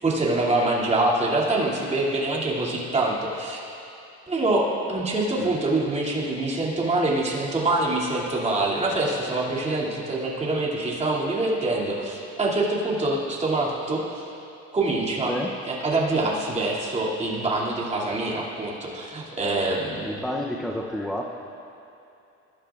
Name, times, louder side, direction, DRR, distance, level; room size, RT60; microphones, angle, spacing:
voice 1, 0.0-3.6 4.3-14.2 14.7-15.3 15.7-19.9, right 2 dB, 20° right, -4 dB, 2.6 m, -25 dB
voice 2, 15.3-15.6 20.0-21.2, equal, ahead, 0 dB, 0.6 m, -30 dB
21.0 x 12.0 x 2.5 m, 2.7 s
cardioid pair, 115°, 30 cm